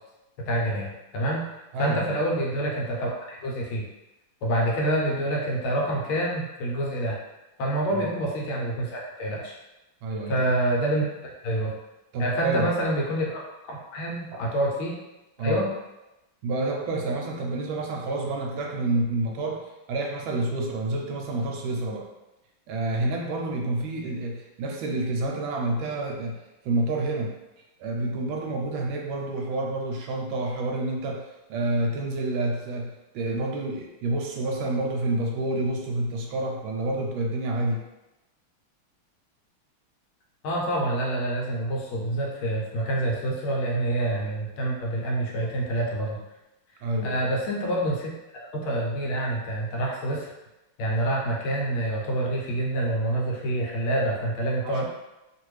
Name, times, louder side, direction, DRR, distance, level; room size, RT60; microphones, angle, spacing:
voice 1, 0.4-1.4 1.8-3.9 4.4-7.2 7.6-9.5 10.3-11.0 11.4-11.7 12.2-15.0 15.4-15.7 40.4-46.2 47.0-50.3 50.8-54.8, right 1 dB, 85° left, -2 dB, 1.6 m, -27 dB
voice 2, 1.7-2.1 7.9-8.1 10.0-10.5 12.1-12.7 14.3-14.4 15.4-15.6 16.4-22.1 22.7-26.4 26.6-27.3 27.8-37.8 45.4-45.5 46.8-47.3 54.6-54.8, right 2 dB, 75° right, 1 dB, 1.3 m, -28 dB
3.3 x 2.5 x 3.1 m, 0.99 s
omnidirectional pair, 2.3 m